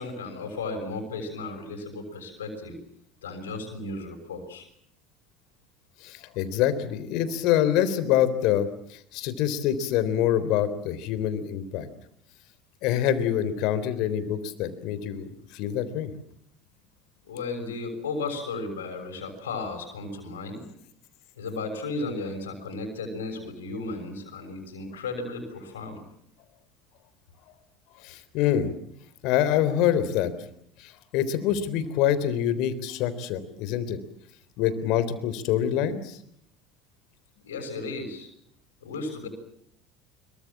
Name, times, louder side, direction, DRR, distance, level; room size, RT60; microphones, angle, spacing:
voice 1, 0.0-2.8 3.2-4.7 17.2-20.6 21.3-26.0 37.4-38.3 38.8-39.3, left 3 dB, 85° left, 5 dB, 6.5 m, -34 dB
voice 2, 6.0-11.9 12.8-16.1 28.0-28.7 29.2-30.3 30.8-34.0 34.6-36.2, left 10 dB, 65° left, 14 dB, 3.5 m, -26 dB
26.0 x 23.5 x 7.4 m, 0.70 s
hypercardioid pair, 75°, 0 cm